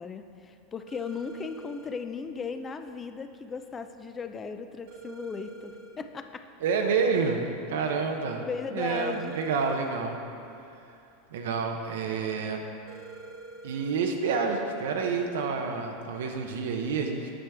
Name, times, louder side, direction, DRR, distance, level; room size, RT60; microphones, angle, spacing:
voice 1, 0.0-6.4 8.4-9.3, left 5 dB, 20° left, 8 dB, 0.4 m, -37 dB
sound 1, 0.9-1.9 4.9-5.9 8.9-9.9 12.9-13.9, right 3 dB, 55° right, 0.9 m, -45 dB
voice 2, 6.6-7.4 7.7-8.4 8.7-10.2 11.3-12.7 13.6-17.3, right 5 dB, 85° right, 3 dB, 0.7 m, -28 dB
8.7 x 7.2 x 3.5 m, 2.6 s
supercardioid pair, 140°, 0 cm